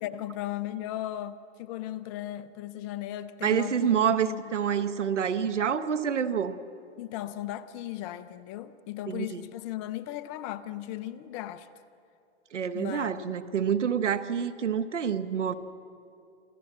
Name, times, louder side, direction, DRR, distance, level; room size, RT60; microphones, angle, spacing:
voice 1, 0.0-4.4 7.0-11.7 12.7-13.3, left 13 dB, 25° left, 0.6 m, -37 dB
voice 2, 3.4-6.6 9.1-9.4 12.5-15.5, right 8 dB, 90° right, 1.2 m, -27 dB
27.5 x 13.5 x 7.5 m
hypercardioid pair, 135°, 35 cm